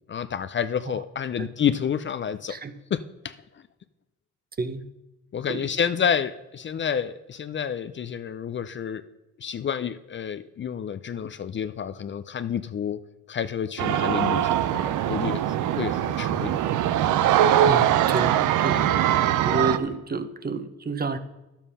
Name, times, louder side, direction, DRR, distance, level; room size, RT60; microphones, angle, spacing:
voice 1, 0.1-2.6 2.9-3.3 5.3-9.0 9.4-13.0 13.3-16.5, left 8 dB, 40° left, 12 dB, 0.5 m, -29 dB
sound 1, 13.8-19.8, right 11 dB, 80° right, 0.7 m, -22 dB
voice 2, 17.7-18.9 19.4-21.2, right 4 dB, 30° right, 11 dB, 0.9 m, -29 dB
11.0 x 7.3 x 5.6 m, 1.0 s
cardioid pair, 90°, 30 cm